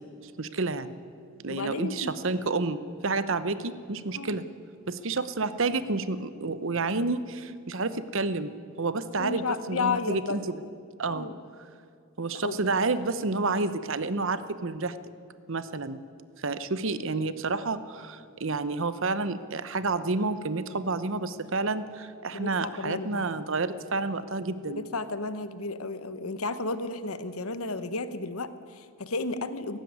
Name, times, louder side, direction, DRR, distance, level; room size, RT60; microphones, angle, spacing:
voice 1, 0.2-1.0 1.4-4.4 4.9-8.5 8.8-10.6 11.0-11.3 12.2-15.0 15.5-16.0 16.4-24.8, right 3 dB, 60° right, 14 dB, 0.9 m, -30 dB
voice 2, 1.5-2.1 4.2-4.4 9.2-10.4 11.1-11.3 12.3-12.6 22.3-23.2 24.8-29.8, left 3 dB, 75° left, 12 dB, 1.1 m, -33 dB
17.5 x 16.0 x 9.6 m, 2.4 s
head